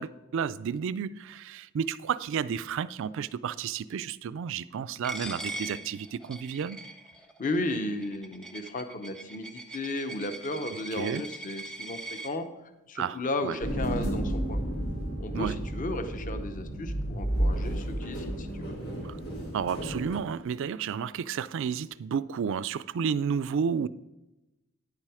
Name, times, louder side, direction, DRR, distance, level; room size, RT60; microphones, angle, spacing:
voice 1, 0.0-6.8 11.0-11.2 13.0-13.6 15.3-15.6 19.0-19.2 19.5-23.9, right 7 dB, 60° right, 0.3 m, -31 dB
Coin (dropping), 5.0-12.3, right 1 dB, 5° left, 0.7 m, -41 dB
voice 2, 7.4-12.5 12.9-14.6 15.2-18.8, left 2 dB, 35° left, 0.7 m, -34 dB
sound 1, 13.6-20.2, right 1 dB, 90° left, 3.0 m, -32 dB
9.5 x 7.4 x 4.8 m
head